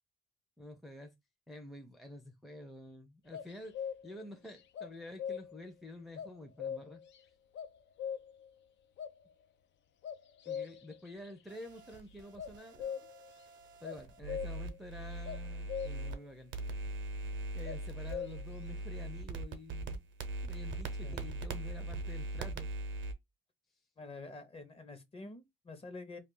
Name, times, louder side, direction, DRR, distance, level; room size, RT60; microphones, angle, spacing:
voice 1, 0.6-1.1 1.5-3.8 4.0-7.0 10.5-13.1 13.8-16.5 17.5-20.0 20.4-22.7, left 2 dB, ahead, 0.6 m, -49 dB
sound 1, 3.3-4.2 4.8-5.7 6.2-7.2 7.5-8.5 9.0-9.1 10.0-11.1 12.4-13.3 13.8-14.8 15.2-16.2 17.6-18.6, left 8 dB, 65° left, 0.5 m, -41 dB
sound 2, 11.5-16.2 16.5-23.1, right 2 dB, 70° right, 0.7 m, -41 dB
voice 2, 24.0-26.2, left 3 dB, 30° left, 0.8 m, -47 dB
2.3 x 2.3 x 3.8 m
cardioid pair, 90°, 20 cm